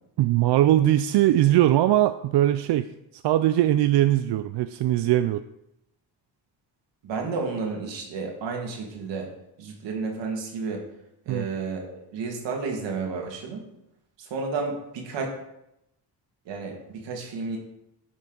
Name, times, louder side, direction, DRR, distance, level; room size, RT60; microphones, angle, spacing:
voice 1, 0.2-2.9 3.1-5.4 11.3-11.5, right 13 dB, 70° right, 11 dB, 0.5 m, -21 dB
voice 2, 7.0-9.3 9.6-10.8 11.3-13.6 14.2-15.3 16.5-17.6, right 4 dB, 90° right, 1 dB, 2.1 m, -31 dB
10.5 x 6.3 x 3.9 m, 0.83 s
cardioid pair, 100°, 42 cm